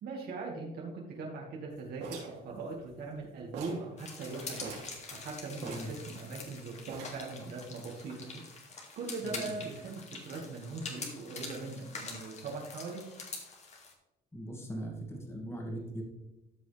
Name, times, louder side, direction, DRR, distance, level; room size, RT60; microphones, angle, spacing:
voice 1, 0.0-4.7 5.1-8.4 8.9-13.0, right 3 dB, 65° right, -2 dB, 1.9 m, -40 dB
sound 1, 2.0-3.2 3.5-3.9 4.2-4.3 4.6-5.0 5.6-6.5 6.9-7.3, right 4 dB, 80° right, 2.9 m, -44 dB
sound 2, 4.0-13.9, left 4 dB, 40° left, 2.1 m, -45 dB
voice 2, 9.2-9.5 14.3-16.0, right 1 dB, 15° left, 0 dB, 2.2 m, -40 dB
13.5 x 5.3 x 3.4 m, 0.96 s
cardioid pair, 110°, 17 cm